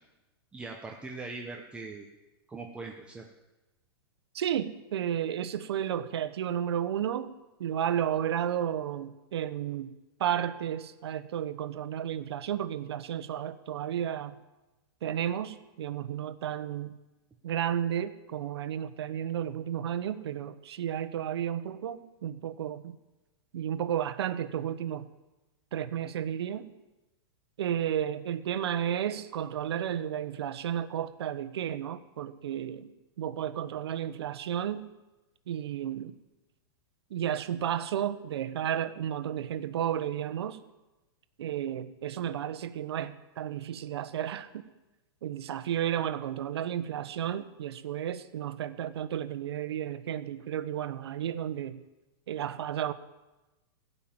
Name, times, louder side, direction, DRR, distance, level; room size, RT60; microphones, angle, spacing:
voice 1, 0.5-2.1 2.5-3.3, right 3 dB, 10° right, 1 dB, 0.8 m, -41 dB
voice 2, 4.3-7.3 7.6-9.9 10.2-14.3 15.0-16.9 17.4-23.0 23.5-25.0 25.7-26.7 27.6-32.9 33.2-34.9 35.5-36.1 37.1-40.6 41.4-44.6 45.2-51.8 52.3-52.9, right 10 dB, 80° right, 12 dB, 1.0 m, -32 dB
16.5 x 5.6 x 8.9 m, 1.1 s
supercardioid pair, 160°, 13 cm